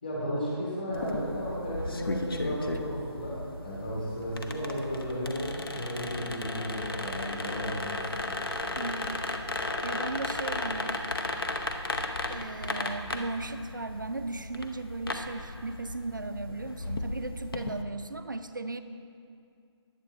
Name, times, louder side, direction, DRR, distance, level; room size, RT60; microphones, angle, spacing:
voice 1, 0.0-8.2, equal, 20° left, -6 dB, 1.9 m, -34 dB
sound 1, 0.9-17.8, left 2 dB, 50° left, 0.8 m, -35 dB
voice 2, 8.8-9.2 9.8-11.0 12.3-18.8, right 3 dB, 45° right, 9 dB, 0.4 m, -36 dB
21.5 x 8.1 x 2.6 m, 2.4 s
figure-of-eight pair, 180°, 15 cm